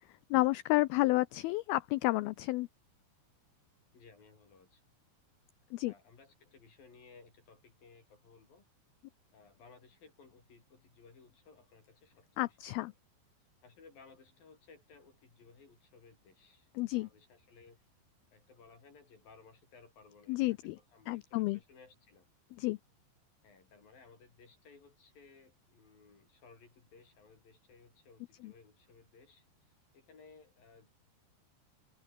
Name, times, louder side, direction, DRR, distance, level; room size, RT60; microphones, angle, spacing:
voice 1, 0.3-2.7 5.7-5.9 12.4-12.9 16.8-17.1 20.3-20.8 21.1-21.6 22.5-22.8 28.4-28.5, left 19 dB, 85° left, 2.1 m, -31 dB
voice 2, 3.9-4.8 5.8-8.6 9.3-12.9 13.6-17.8 18.3-22.3 23.4-29.4 29.9-31.0, left 4 dB, 55° left, 6.9 m, -60 dB
omnidirectional pair, 5.1 m